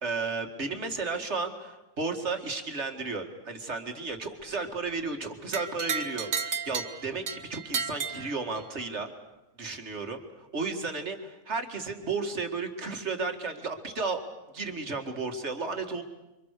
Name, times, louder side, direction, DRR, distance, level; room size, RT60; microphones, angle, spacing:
voice 1, 0.0-9.1 9.6-14.2 14.5-16.0, right 4 dB, 55° right, 5 dB, 2.5 m, -33 dB
sound 1, 5.5-8.9, right 6 dB, 80° right, 1.6 m, -33 dB
29.0 x 24.5 x 6.7 m, 0.97 s
omnidirectional pair, 1.4 m